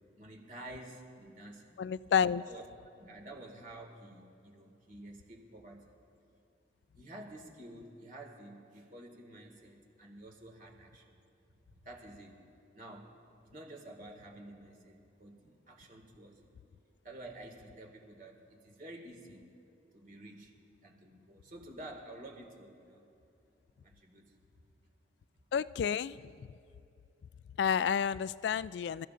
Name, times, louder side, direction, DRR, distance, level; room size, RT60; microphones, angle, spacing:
voice 1, 0.2-1.8 2.4-2.6 3.0-5.9 6.9-11.2 11.5-11.6 11.8-12.4 12.7-13.1 13.4-16.5 17.0-19.5 19.9-20.5 20.8-23.1 23.8-24.4 25.3-25.4, right 1 dB, 50° right, 2 dB, 2.1 m, -50 dB
voice 2, 1.8-2.4 25.5-26.5 27.6-29.1, left 7 dB, 70° left, 18 dB, 0.3 m, -30 dB
28.0 x 14.5 x 2.6 m, 2.7 s
head